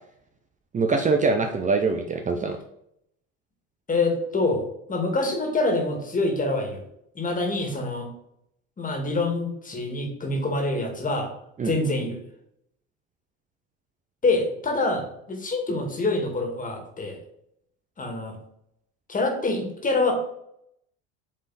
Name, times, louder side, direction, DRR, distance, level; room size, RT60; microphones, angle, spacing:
voice 1, 0.7-2.6 11.6-11.8, right 4 dB, 25° right, 5 dB, 0.6 m, -23 dB
voice 2, 3.9-6.8 7.1-8.1 8.8-11.3 11.6-12.2 14.2-17.2 18.0-18.4 19.1-20.1, left 2 dB, 25° left, 3 dB, 2.1 m, -26 dB
7.4 x 3.6 x 4.2 m, 0.74 s
supercardioid pair, 95°, 33 cm